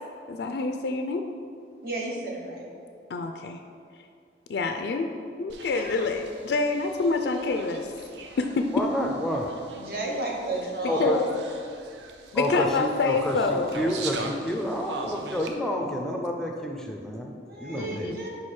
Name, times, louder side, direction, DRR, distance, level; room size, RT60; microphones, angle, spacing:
voice 1, 0.3-1.2 3.1-3.6 4.5-5.1 5.4-7.9 8.4-8.7 11.0-11.3 12.3-13.8 17.8-18.2, left 3 dB, 75° left, 5 dB, 0.3 m, -27 dB
voice 2, 1.8-2.6 9.7-11.3 17.4-18.3, right 2 dB, 55° right, -2 dB, 1.0 m, -32 dB
sound 1, 5.5-15.5, right 3 dB, 90° right, 0.5 m, -41 dB
voice 3, 8.7-9.5 10.9-11.2 12.3-18.1, equal, 5° left, 0 dB, 0.5 m, -29 dB
4.9 x 4.7 x 4.3 m, 2.3 s
head